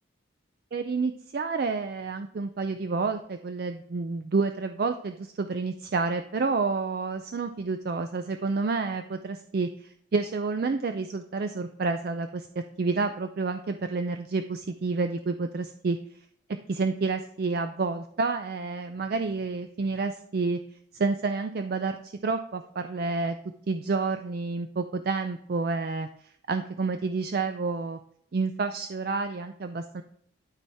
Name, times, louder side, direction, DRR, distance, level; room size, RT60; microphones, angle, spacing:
voice 1, 0.7-12.5 12.8-16.0 16.7-20.6 20.9-23.4 23.7-28.0 28.3-30.0, right 4 dB, 50° right, 8 dB, 0.4 m, -29 dB
12.0 x 4.2 x 3.5 m, 0.68 s
head